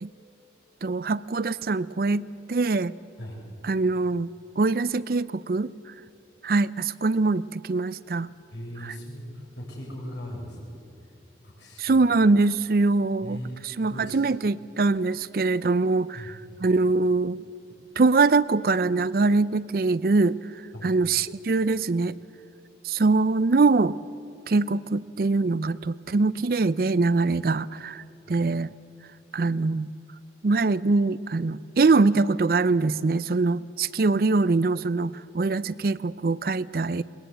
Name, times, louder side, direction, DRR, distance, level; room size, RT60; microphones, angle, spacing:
voice 1, 0.8-2.2 2.5-2.9 3.6-4.3 4.6-5.7 6.4-8.3 11.8-13.4 13.8-17.4 18.0-20.4 20.8-22.2 22.8-24.0 24.5-28.7 29.3-29.9 30.4-37.0, right 3 dB, 55° right, 18 dB, 0.5 m, -23 dB
voice 2, 8.5-10.7 11.4-12.1 13.2-14.2 16.1-16.4 20.7-20.9 28.2-28.4, equal, 85° left, -1 dB, 6.0 m, -39 dB
21.5 x 20.0 x 8.1 m, 2.6 s
head